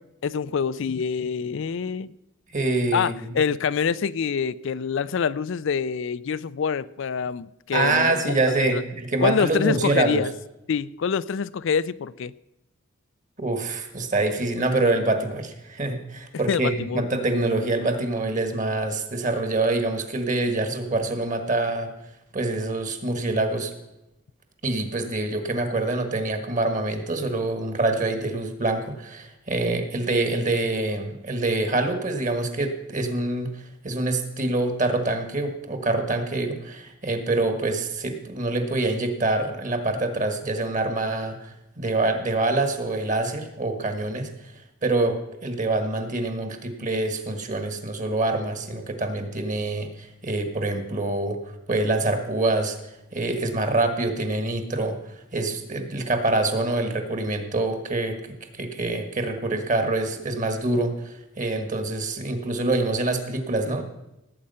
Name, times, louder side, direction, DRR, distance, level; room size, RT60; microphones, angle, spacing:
voice 1, 0.2-2.1 2.9-8.8 9.2-10.3 10.7-12.3 16.5-17.1, left 6 dB, 65° left, 0.4 m, -26 dB
voice 2, 2.5-3.1 7.7-10.2 13.4-21.9 22.3-23.7 24.6-33.5 33.8-44.3 44.8-51.4 51.7-52.8 53.1-55.0 55.3-58.2 58.5-63.8, right 2 dB, 40° right, 1.7 m, -25 dB
18.0 x 8.6 x 5.6 m
head